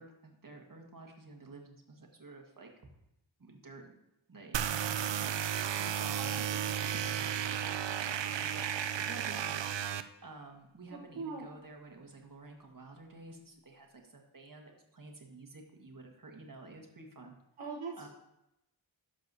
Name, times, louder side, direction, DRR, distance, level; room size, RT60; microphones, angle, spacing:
voice 1, 0.0-2.7 3.4-3.9 4.3-9.7 10.2-17.4 17.9-18.1, right 2 dB, 45° right, 2 dB, 1.5 m, -51 dB
sound 1, 4.5-10.0, right 9 dB, 65° right, 0.5 m, -33 dB
voice 2, 10.9-11.4 17.6-18.1, right 4 dB, 90° right, -3 dB, 1.0 m, -41 dB
11.5 x 6.6 x 2.7 m, 0.85 s
wide cardioid pair, 70°, 48 cm